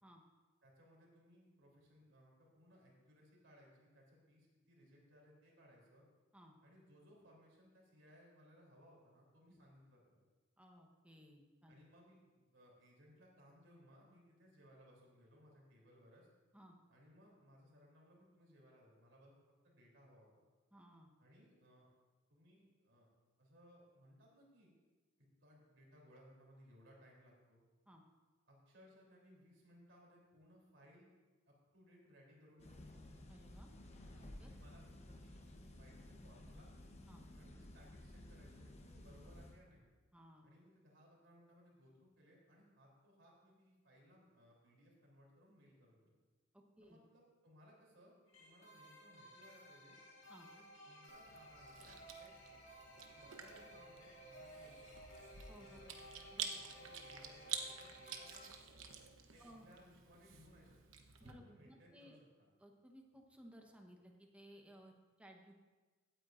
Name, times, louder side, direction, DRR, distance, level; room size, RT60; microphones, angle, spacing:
voice 1, 0.6-6.0 6.6-10.2 11.7-16.3 16.9-19.3 19.6-20.3 21.2-21.9 22.3-23.1 23.4-24.7 25.4-27.6 28.5-31.1 31.5-33.1 34.4-35.4 35.8-36.7 37.3-39.8 40.4-46.2 46.8-50.0 50.5-52.3 53.1-54.9 55.6-58.5 59.3-60.8 61.2-62.2, equal, 65° right, -2 dB, 3.4 m, -65 dB
voice 2, 10.6-11.8 16.5-16.8 20.7-21.1 27.9-28.0 33.3-33.7 34.1-34.5 37.1-37.2 40.1-40.5 46.5-47.0 50.3-50.5 55.5-55.8 56.3-56.6 59.4-59.7 61.2-62.2 62.6-65.6, equal, 5° right, 2 dB, 1.1 m, -60 dB
sound 1, 32.6-39.6, left 1 dB, 35° left, 0.9 m, -55 dB
sound 2, 48.3-58.5, equal, 65° left, 2.2 m, -57 dB
Chewing mastication, 51.1-61.3, right 7 dB, 85° right, 1.0 m, -50 dB
16.5 x 9.1 x 2.6 m, 1.3 s
head